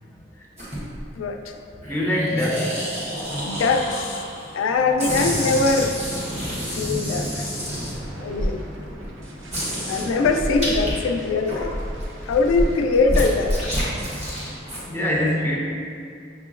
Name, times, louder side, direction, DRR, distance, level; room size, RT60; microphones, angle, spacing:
voice 1, 0.0-0.5 1.9-2.8 5.2-5.3 14.8-15.6, equal, 10° left, -3 dB, 0.5 m, -24 dB
sound 1, 0.6-1.1 1.8-4.5 5.0-8.5 9.0-9.1 9.5-10.9 11.3-14.8, equal, 35° right, 1.0 m, -28 dB
voice 2, 1.1-1.6 3.4-4.2 4.5-5.9 6.7-7.8 8.2-8.7 9.9-11.8 12.2-13.7, left 3 dB, 90° left, 6 dB, 0.3 m, -22 dB
sound 2, 4.7-14.6, equal, 90° right, 0.7 m, -40 dB
5.9 x 2.8 x 2.4 m, 2.3 s
head